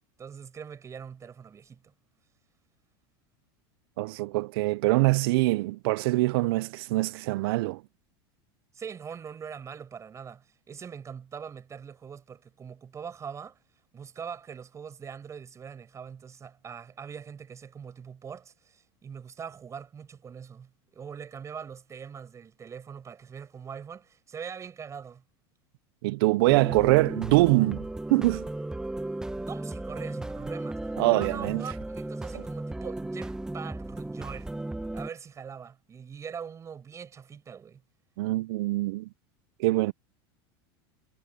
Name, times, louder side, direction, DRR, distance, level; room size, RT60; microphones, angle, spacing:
voice 1, 0.2-1.9 8.7-13.6 13.9-25.2 29.4-34.5 34.9-37.8, right 7 dB, 25° right, 6.2 m, -42 dB
voice 2, 4.0-7.8 26.0-28.4 31.0-31.6 38.2-39.1 39.6-39.9, right 21 dB, 70° right, 0.6 m, -24 dB
sound 1, 26.5-35.1, right 2 dB, 5° right, 1.4 m, -35 dB
supercardioid pair, 135°, 13 cm